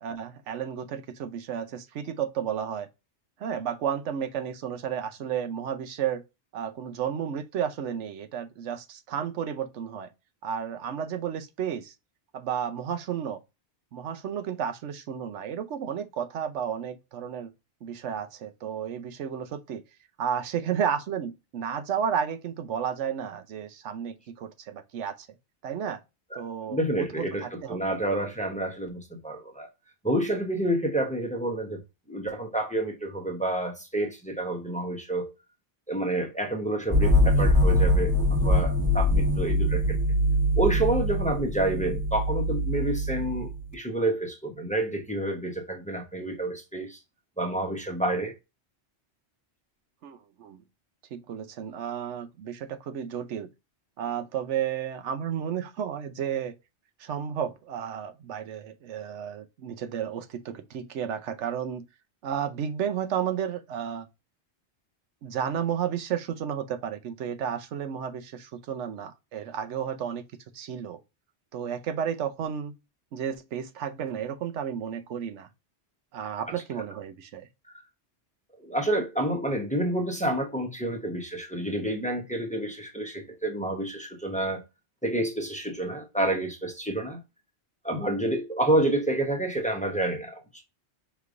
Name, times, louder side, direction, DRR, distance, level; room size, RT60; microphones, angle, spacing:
voice 1, 0.0-2.9 3.4-6.2 6.5-10.1 10.4-11.9 12.3-13.4 13.9-17.5 17.8-19.8 20.2-25.3 25.6-26.0 26.3-28.0 50.0-50.6 51.1-53.5 54.0-56.5 57.0-61.8 62.2-64.1 65.2-70.2 70.5-71.0 71.5-72.7 73.1-75.5 76.1-77.5, right 8 dB, 85° right, 1.0 m, -32 dB
voice 2, 26.7-29.7 30.0-31.8 32.1-35.3 35.9-40.0 40.6-47.0 47.4-48.3 78.6-84.6 85.0-87.2 87.8-90.4, right 1 dB, 5° left, 0.7 m, -29 dB
sound 1, 36.9-43.7, left 1 dB, 20° right, 1.2 m, -23 dB
5.0 x 3.2 x 2.4 m
omnidirectional pair, 1.2 m